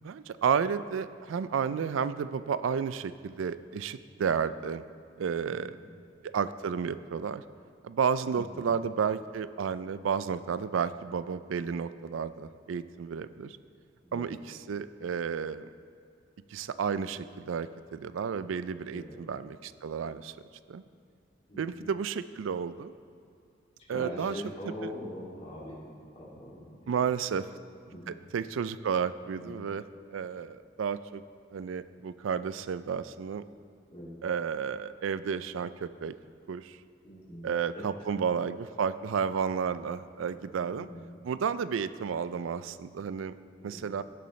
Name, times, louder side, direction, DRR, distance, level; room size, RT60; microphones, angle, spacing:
voice 1, 0.0-4.8 5.2-5.8 6.3-7.4 7.8-13.6 14.1-15.7 16.5-20.3 20.7-20.8 21.6-22.9 23.9-24.3 26.9-27.4 28.1-29.8 30.1-31.2 31.5-33.4 34.2-36.1 36.5-36.8 37.4-40.9 41.2-43.3 43.6-44.0, right 6 dB, 80° right, 14 dB, 0.4 m, -32 dB
voice 2, 5.5-5.9 8.3-8.8 14.0-14.3 18.9-19.2 21.5-21.8 23.9-26.9 27.2-27.4 27.9-28.2 29.3-29.7 33.9-34.2 37.0-37.5 37.7-38.1 40.6-41.1 43.6-43.9, equal, 30° left, -7 dB, 2.6 m, -43 dB
16.5 x 6.7 x 3.2 m, 2.4 s
head